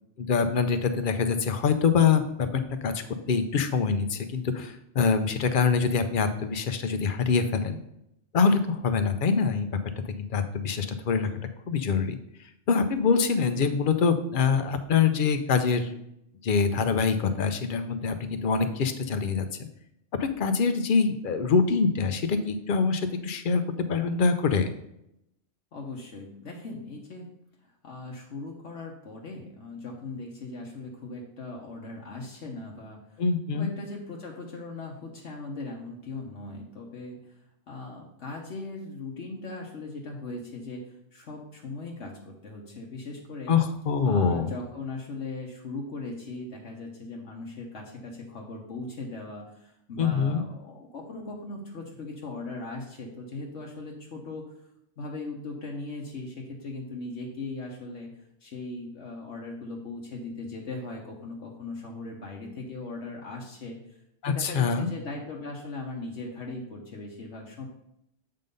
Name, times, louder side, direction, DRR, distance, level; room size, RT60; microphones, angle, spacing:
voice 1, 0.2-3.0 3.3-7.8 8.3-9.8 10.0-11.3 11.7-12.2 12.7-15.9 16.4-19.7 20.2-23.6 23.9-24.7 33.2-33.7 43.5-44.5 50.0-50.4 64.2-64.9, left 5 dB, 55° left, 9 dB, 0.7 m, -25 dB
voice 2, 25.7-27.3 27.6-33.2 33.5-37.3 37.7-43.5 44.0-54.5 55.0-58.1 58.4-64.0 64.3-67.7, left 3 dB, 70° left, -1 dB, 1.2 m, -39 dB
7.7 x 3.8 x 5.3 m, 0.81 s
omnidirectional pair, 1.2 m